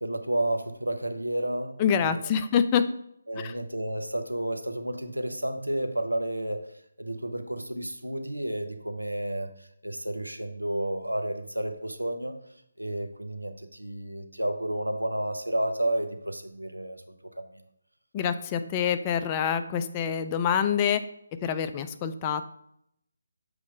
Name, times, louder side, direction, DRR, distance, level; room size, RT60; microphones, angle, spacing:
voice 1, 0.0-2.2 3.3-6.6 7.0-9.5 9.8-12.4 12.8-17.0 17.4-17.5, right 1 dB, 85° right, 7 dB, 0.7 m, -31 dB
voice 2, 1.8-2.9 3.4-3.5 18.1-21.0 21.4-22.4, left 8 dB, 20° left, 10 dB, 0.3 m, -26 dB
6.8 x 3.1 x 5.3 m, 0.73 s
figure-of-eight pair, 150°, 0 cm